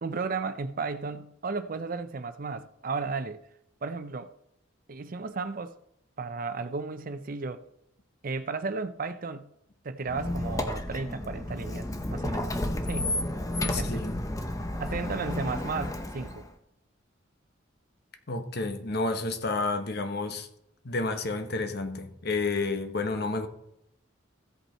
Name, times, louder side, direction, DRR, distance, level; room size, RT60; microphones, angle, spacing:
voice 1, 0.0-3.4 3.8-4.3 4.9-5.8 6.2-7.6 8.2-9.5 9.8-12.5 12.8-13.1 13.6-14.0 14.8-16.5, right 4 dB, 45° right, 0.5 m, -34 dB
Squeak, 10.1-16.5, left 1 dB, 15° left, 0.8 m, -32 dB
voice 2, 13.7-14.3 18.3-20.5 20.8-23.5, left 3 dB, 55° left, 1.0 m, -30 dB
15.5 x 5.4 x 4.3 m
head